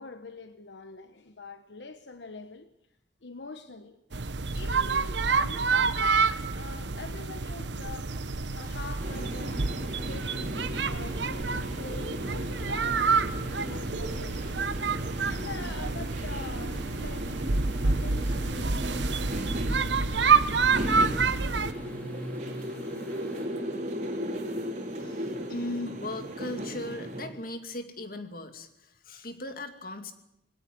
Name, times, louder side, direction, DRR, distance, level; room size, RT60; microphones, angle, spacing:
voice 1, 0.0-2.7 3.2-4.0 4.5-6.1 6.5-8.2 8.5-9.7 10.0-14.7 15.2-17.4 17.8-20.5 25.0-25.1, left 3 dB, 80° left, 1.2 m, -44 dB
sound 1, 4.1-21.7, right 4 dB, 85° right, 1.1 m, -28 dB
sound 2, 8.5-23.5, equal, 10° left, 4.1 m, -54 dB
sound 3, 9.0-27.3, equal, 40° right, 3.9 m, -36 dB
voice 2, 25.0-30.1, left 1 dB, 55° left, 2.5 m, -38 dB
20.5 x 17.5 x 9.6 m
head